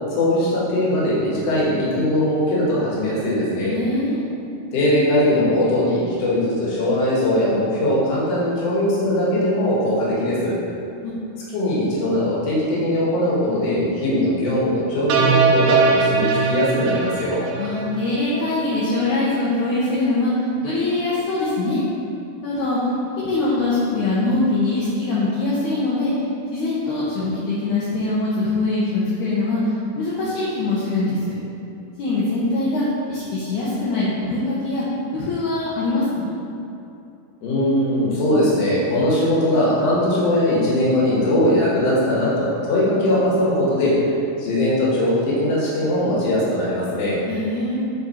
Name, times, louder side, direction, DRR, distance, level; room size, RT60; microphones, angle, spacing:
voice 1, 0.2-3.8 4.7-10.6 11.5-17.4 37.4-44.1 44.4-47.2, left 1 dB, 55° left, -7 dB, 2.0 m, -20 dB
voice 2, 3.7-4.2 10.6-11.2 17.5-20.3 20.6-21.8 22.4-22.8 23.2-26.1 26.5-31.4 32.0-34.8 35.1-36.3 47.3-47.8, left 2 dB, 75° left, -8 dB, 1.9 m, -23 dB
sound 1, 15.1-18.4, right 4 dB, 85° right, 2.5 m, -20 dB
7.2 x 4.0 x 4.3 m, 2.7 s
omnidirectional pair, 4.5 m